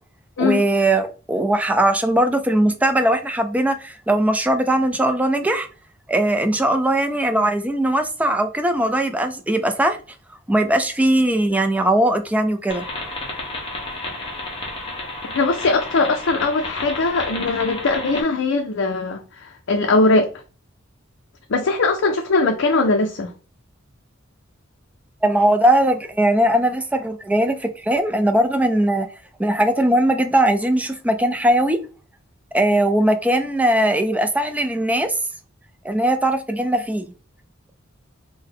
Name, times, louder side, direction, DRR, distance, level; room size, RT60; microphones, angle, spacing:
voice 1, 0.4-5.7 6.1-10.0 10.5-12.8 25.2-29.1 29.4-31.8 32.5-35.1 35.8-37.1, right 1 dB, 5° right, 0.4 m, -19 dB
sound 1, 12.7-18.2, left 2 dB, 25° left, 1.0 m, -31 dB
voice 2, 15.3-20.3 21.5-23.3, left 3 dB, 70° left, 0.5 m, -20 dB
3.7 x 2.1 x 3.7 m
head